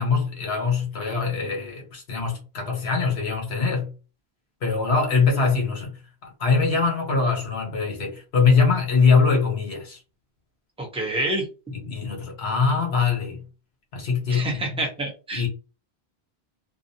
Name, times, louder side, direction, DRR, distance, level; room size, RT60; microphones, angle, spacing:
voice 1, 0.0-3.9 4.6-10.0 11.7-13.4 13.9-14.6 15.3-15.5, left 5 dB, 75° left, 1.1 m, -23 dB
voice 2, 10.8-11.5 14.3-15.4, right 2 dB, 5° right, 0.6 m, -27 dB
2.6 x 2.0 x 2.6 m
omnidirectional pair, 1.1 m